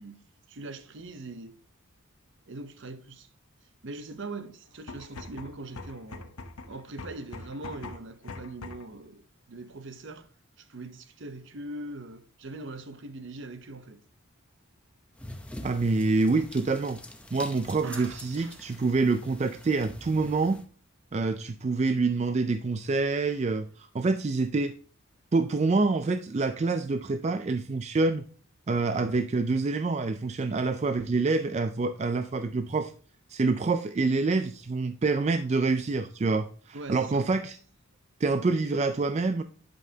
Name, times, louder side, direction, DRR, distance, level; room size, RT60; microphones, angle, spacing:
voice 1, 0.0-1.6 2.5-3.3 3.8-6.3 6.7-9.2 9.5-10.3 10.6-14.0 17.8-18.6 36.7-37.3, right 2 dB, 55° right, 0.7 m, -41 dB
sound 1, 4.7-9.0, left 3 dB, 90° left, 0.9 m, -43 dB
sound 2, 15.2-20.6, left 1 dB, 5° left, 0.7 m, -45 dB
voice 2, 15.6-17.0 17.3-20.6 21.1-24.7 25.3-28.2 28.7-32.9 33.3-37.6 38.2-39.4, right 3 dB, 30° right, 0.3 m, -26 dB
11.0 x 5.4 x 2.8 m
head